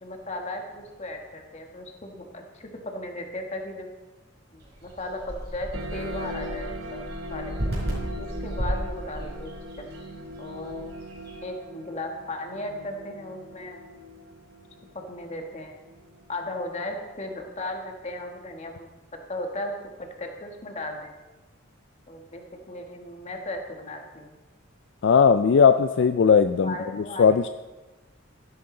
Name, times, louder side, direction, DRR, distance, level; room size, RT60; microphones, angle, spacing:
voice 1, 0.0-3.9 4.5-7.7 8.2-9.9 10.4-10.9 11.4-13.8 14.9-15.7 16.3-18.9 19.3-21.1 22.1-24.3 26.6-27.3, left 1 dB, 35° left, 3 dB, 1.5 m, -36 dB
sound 1, 4.6-11.4, equal, 55° right, 4.4 m, -34 dB
sound 2, 5.7-16.7, equal, 80° right, 1.2 m, -40 dB
voice 2, 25.0-26.7 27.2-27.5, left 6 dB, 60° left, 10 dB, 0.4 m, -18 dB
13.0 x 11.0 x 3.9 m, 1.2 s
head